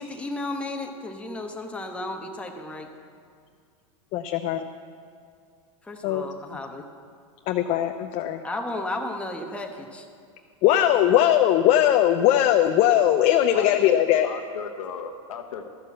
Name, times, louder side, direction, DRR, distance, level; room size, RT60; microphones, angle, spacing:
voice 1, 0.0-2.9 5.8-6.9 8.4-10.1, left 2 dB, 5° left, 2 dB, 1.0 m, -33 dB
voice 2, 4.1-4.6 6.0-6.2 7.5-8.4 10.6-14.3, left 11 dB, 45° left, 6 dB, 0.5 m, -20 dB
voice 3, 13.5-15.7, left 7 dB, 85° left, 5 dB, 1.0 m, -35 dB
13.0 x 6.6 x 7.2 m, 2.2 s
supercardioid pair, 120°, 17 cm